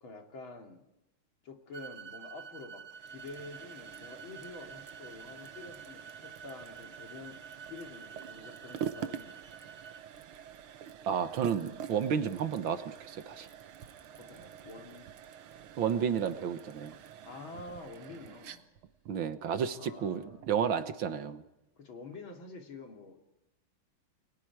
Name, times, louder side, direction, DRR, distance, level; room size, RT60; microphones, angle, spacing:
voice 1, 0.0-0.8 1.4-7.4 7.7-9.4 14.2-15.1 17.2-18.7 19.8-20.5 21.8-23.2, left 3 dB, 70° left, 2 dB, 3.5 m, -48 dB
sound 1, 1.7-10.0, right 6 dB, 50° right, 1.7 m, -49 dB
sound 2, 2.9-20.6, right 9 dB, 85° right, 1.9 m, -46 dB
voice 2, 11.1-13.5 15.8-16.9 19.1-21.4, right 7 dB, 70° right, 10 dB, 1.9 m, -31 dB
30.0 x 21.5 x 4.8 m, 0.93 s
omnidirectional pair, 2.3 m